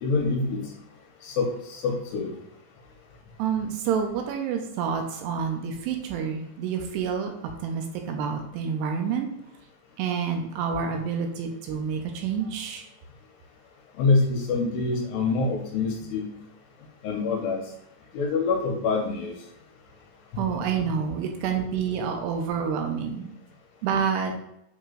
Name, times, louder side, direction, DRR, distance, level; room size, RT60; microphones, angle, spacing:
voice 1, 0.0-0.6 1.2-2.3 14.0-16.2 17.0-17.6 18.1-19.3 20.3-20.4, left 3 dB, 75° left, 1 dB, 2.6 m, -25 dB
voice 2, 3.4-7.3 7.6-9.3 10.0-12.8 20.4-23.3 23.8-24.3, right 6 dB, 85° right, 3 dB, 2.6 m, -28 dB
8.1 x 3.0 x 3.8 m, 0.77 s
omnidirectional pair, 5.2 m